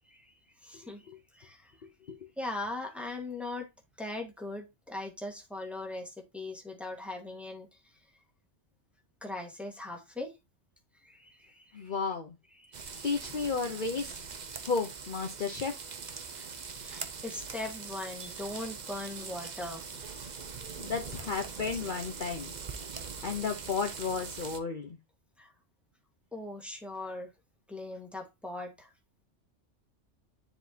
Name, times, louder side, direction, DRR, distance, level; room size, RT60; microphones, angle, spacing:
voice 1, 0.6-1.0 1.3-1.8 2.4-3.7 4.0-7.7 9.2-10.3 11.0-11.9 12.6-13.0 14.5-14.6 16.2-16.5 16.8-19.8 25.4-25.5 26.3-27.3 27.7-28.9, left 2 dB, ahead, 1 dB, 1.4 m, -40 dB
voice 2, 11.7-12.3 13.0-14.2 14.6-15.9 20.8-22.5 23.2-25.0, left 5 dB, 50° left, 4 dB, 0.8 m, -33 dB
sound 1, 12.7-24.6, right 5 dB, 40° right, 0.8 m, -42 dB
10.0 x 4.1 x 2.7 m, 0.24 s
omnidirectional pair, 1.2 m